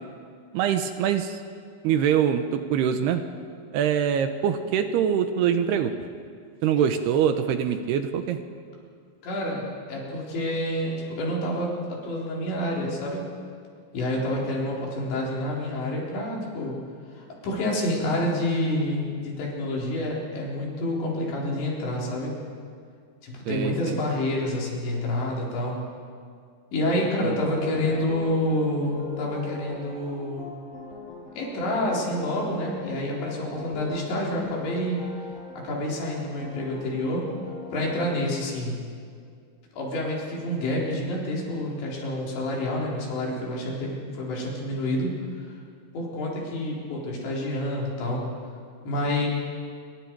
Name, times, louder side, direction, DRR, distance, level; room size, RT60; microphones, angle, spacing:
voice 1, 0.5-1.4 1.8-3.2 3.7-5.9 6.6-8.4 23.5-24.0 27.2-27.4, right 8 dB, 75° right, 8 dB, 2.7 m, -24 dB
voice 2, 9.2-13.3 13.9-16.8 17.1-22.3 23.2-25.8 26.7-30.5 31.3-35.0 35.6-37.3 37.7-38.8 39.7-45.1 45.4-45.6 45.9-48.2 48.8-49.3, left 1 dB, 80° left, -4 dB, 6.3 m, -28 dB
sound 1, 26.8-38.1, left 3 dB, 50° left, 8.2 m, -41 dB
27.5 x 23.5 x 4.7 m, 2.2 s
omnidirectional pair, 5.1 m